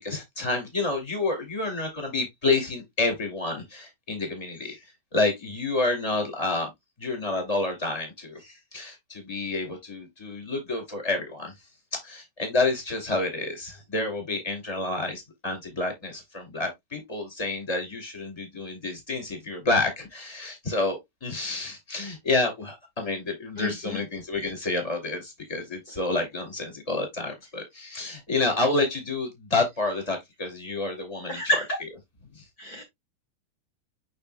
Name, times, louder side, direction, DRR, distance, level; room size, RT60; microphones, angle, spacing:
voice 1, 0.0-4.8 5.1-6.7 7.0-11.5 11.9-31.4 32.3-32.4, left 2 dB, 10° left, 2.1 m, -29 dB
voice 2, 23.6-24.0 31.3-31.7 32.6-32.8, left 1 dB, 50° left, 1.1 m, -28 dB
6.5 x 6.5 x 2.3 m
omnidirectional pair, 4.3 m